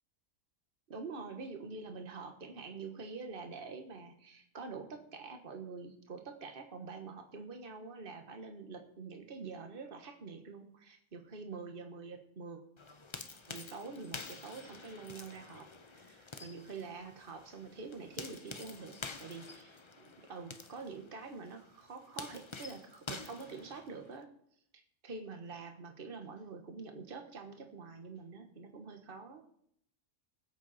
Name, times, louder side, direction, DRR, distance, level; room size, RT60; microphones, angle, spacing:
voice 1, 0.9-12.6 13.5-18.9 19.2-24.3 25.0-29.4, right 4 dB, 45° right, 5 dB, 1.5 m, -46 dB
sound 1, 12.8-24.2, left 4 dB, 30° left, 0.6 m, -49 dB
20.0 x 8.1 x 4.2 m, 0.69 s
omnidirectional pair, 1.4 m